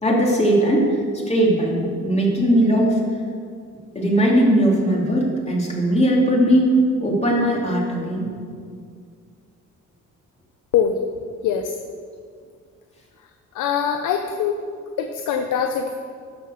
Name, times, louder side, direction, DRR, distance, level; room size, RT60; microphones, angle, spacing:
voice 1, 0.0-0.9 1.3-3.0 3.9-8.3, right 1 dB, 20° left, -2 dB, 3.0 m, -19 dB
voice 2, 11.4-11.8 13.5-14.6 15.0-16.0, left 8 dB, 85° left, 5 dB, 0.8 m, -22 dB
11.5 x 7.0 x 6.6 m, 2.2 s
cardioid pair, 90°, 30 cm